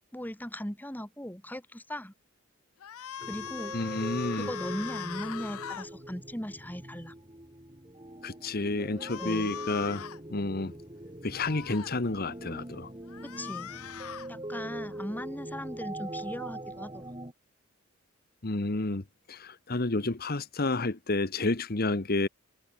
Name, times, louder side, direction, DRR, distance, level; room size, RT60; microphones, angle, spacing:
voice 1, 0.1-2.1 3.2-7.1 9.2-9.5 13.2-13.7 14.3-17.1, equal, 10° left, 3.3 m, -38 dB
sound 1, 2.8-5.9 9.0-10.2 11.3-11.9 13.1-14.3, left 9 dB, 85° left, 0.6 m, -40 dB
sound 2, 3.2-17.3, right 1 dB, 20° right, 3.1 m, -42 dB
voice 2, 3.7-4.5 8.2-10.0 10.3-10.7 11.2-12.9 18.4-22.3, left 2 dB, 45° left, 1.2 m, -30 dB
head